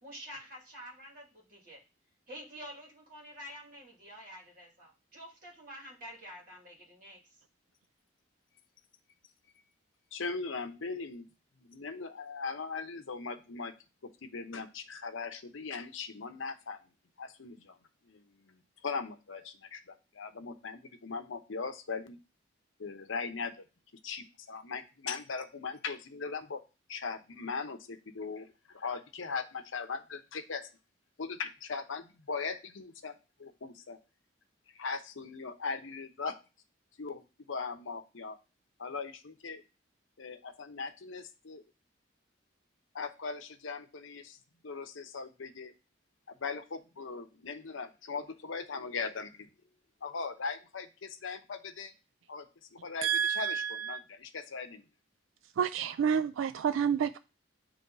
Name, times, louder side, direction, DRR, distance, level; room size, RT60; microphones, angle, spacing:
voice 1, 0.0-1.8 2.3-7.2, equal, 45° right, -3 dB, 2.4 m, -48 dB
voice 2, 10.1-11.3 11.6-13.7 14.0-16.8 17.2-17.8 18.1-22.2 22.8-23.5 24.0-26.6 26.9-30.7 31.2-33.1 33.4-34.0 34.8-36.4 37.0-38.4 38.8-39.6 40.2-41.6 42.9-44.4 44.6-45.7 46.3-49.5 50.0-51.9 52.3-52.5 52.7-54.8, left 4 dB, 80° left, 8 dB, 0.8 m, -39 dB
voice 3, 53.0-54.0 55.6-57.2, right 7 dB, 80° right, 13 dB, 0.3 m, -29 dB
9.5 x 3.2 x 3.9 m, 0.31 s
head